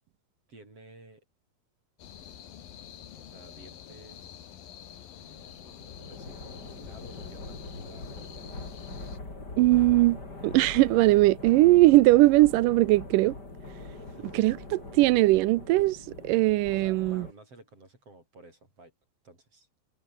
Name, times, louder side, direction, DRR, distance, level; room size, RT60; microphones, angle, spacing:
voice 1, 0.5-1.2 3.2-4.5 5.2-5.6 6.1-8.7 13.9-14.3 16.7-18.9 19.2-19.7, right 2 dB, 40° right, 8.8 m, -53 dB
sound 1, 2.0-9.2, left 10 dB, 75° left, 3.8 m, -47 dB
sound 2, 5.3-17.3, left 2 dB, 25° left, 6.0 m, -42 dB
voice 2, 9.6-13.4 14.3-16.0 16.2-17.2, right 18 dB, 75° right, 2.2 m, -20 dB
omnidirectional pair, 4.1 m